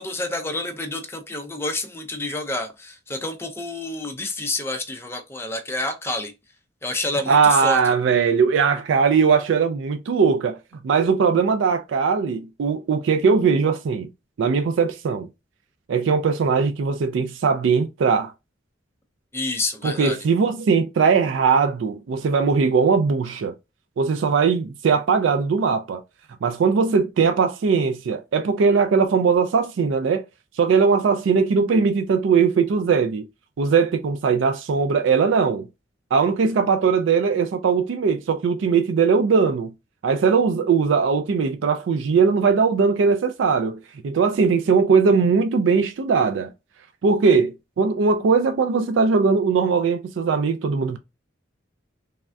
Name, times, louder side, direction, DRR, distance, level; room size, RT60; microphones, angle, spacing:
voice 1, 0.0-6.3 6.8-7.8 19.3-20.2, left 2 dB, 15° left, 0.4 m, -29 dB
voice 2, 7.3-10.6 10.8-14.1 14.4-15.3 15.9-18.3 19.8-23.5 24.0-26.0 26.4-30.2 30.6-33.3 33.6-35.7 36.1-39.7 40.0-43.8 44.0-46.5 47.0-51.0, right 5 dB, 80° right, 0.4 m, -20 dB
3.4 x 2.2 x 2.5 m
head